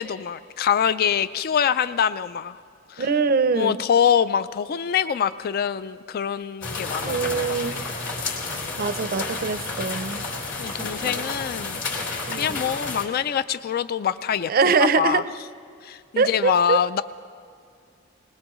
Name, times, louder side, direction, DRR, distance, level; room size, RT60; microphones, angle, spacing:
voice 1, 0.0-2.6 2.9-3.1 3.5-7.4 10.6-14.5 15.0-15.2 15.8-17.0, left 8 dB, 45° left, 14 dB, 0.3 m, -24 dB
voice 2, 3.0-3.8 7.0-7.8 8.8-10.3 10.8-11.3 12.3-12.6 14.5-15.2 16.2-16.8, right 5 dB, 45° right, 13 dB, 0.5 m, -23 dB
sound 1, 6.6-13.1, left 3 dB, 65° left, 3.5 m, -31 dB
21.0 x 20.0 x 3.1 m, 2.3 s
head